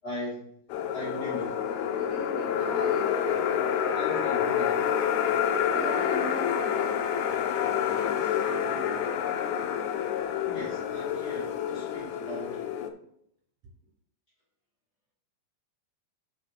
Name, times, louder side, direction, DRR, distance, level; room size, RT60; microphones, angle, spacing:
voice 1, 0.0-0.5 0.9-1.6 3.9-5.0 7.9-9.0 10.5-12.7, equal, 40° left, -5 dB, 1.7 m, -40 dB
sound 1, 0.7-12.9, left 8 dB, 75° left, 1.9 m, -28 dB
voice 2, 1.9-3.1 5.7-6.9 13.6-13.7, right 2 dB, 55° right, 1 dB, 1.8 m, -39 dB
6.4 x 5.0 x 5.6 m, 0.68 s
omnidirectional pair, 3.8 m